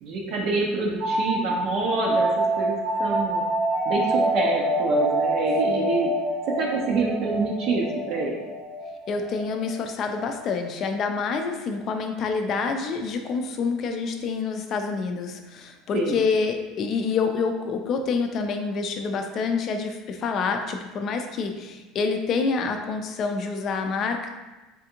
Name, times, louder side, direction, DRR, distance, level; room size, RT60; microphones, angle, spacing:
voice 1, 0.0-2.3 2.6-3.4 3.9-6.1 6.6-8.4 15.9-16.2, right 3 dB, 55° right, -1 dB, 0.5 m, -27 dB
sound 1, 1.0-10.4, right 1 dB, 85° right, 0.7 m, -26 dB
voice 2, 9.1-24.3, left 4 dB, 45° left, 5 dB, 0.4 m, -27 dB
3.5 x 2.4 x 2.8 m, 1.1 s
supercardioid pair, 125°, 0 cm